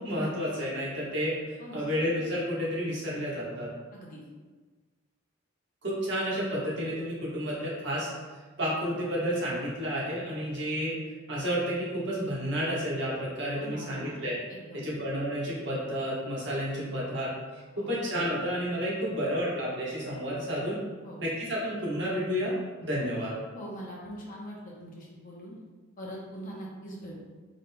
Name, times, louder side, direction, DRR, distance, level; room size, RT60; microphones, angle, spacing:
voice 1, 0.0-1.4 1.7-3.7 5.8-8.1 8.6-11.0 11.3-14.4 14.7-17.3 17.8-20.8 21.2-22.5 22.8-23.3, equal, 60° right, -6 dB, 1.2 m, -31 dB
voice 2, 3.9-4.2 13.5-14.2 14.5-14.9 17.8-17.9 21.0-21.2 23.5-25.5 26.0-27.2, equal, 40° left, -4 dB, 0.7 m, -42 dB
3.8 x 3.6 x 2.2 m, 1.4 s
head